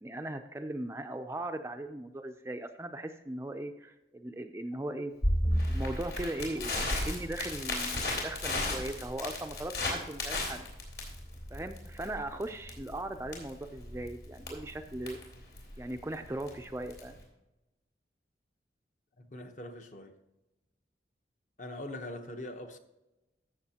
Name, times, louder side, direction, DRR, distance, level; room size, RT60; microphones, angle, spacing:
voice 1, 0.0-5.1 5.7-10.7 11.5-15.2 15.8-17.2, right 1 dB, 15° right, 0.4 m, -38 dB
Crackle, 5.2-17.2, left 1 dB, 65° left, 3.4 m, -34 dB
voice 2, 19.2-20.2 21.6-22.8, left 1 dB, 45° left, 0.9 m, -42 dB
14.0 x 7.0 x 2.9 m
head